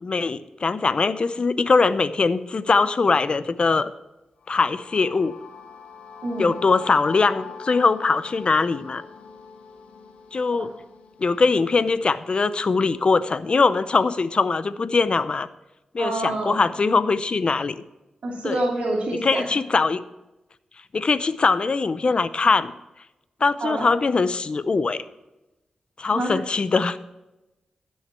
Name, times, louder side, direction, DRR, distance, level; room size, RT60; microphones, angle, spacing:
voice 1, 0.0-3.9 4.5-5.3 6.4-9.0 10.3-10.7 11.2-15.5 15.9-17.8 18.4-18.6 19.2-20.0 20.9-22.7 23.4-25.0 26.0-27.0, left 4 dB, 50° left, 14 dB, 0.6 m, -21 dB
sound 1, 4.4-12.3, left 6 dB, 80° left, 1.3 m, -43 dB
voice 2, 16.0-16.7 18.2-19.6 23.6-23.9 26.1-26.4, right 2 dB, 65° right, -5 dB, 2.6 m, -27 dB
13.5 x 6.4 x 4.4 m, 0.98 s
cardioid pair, 60°, 2 cm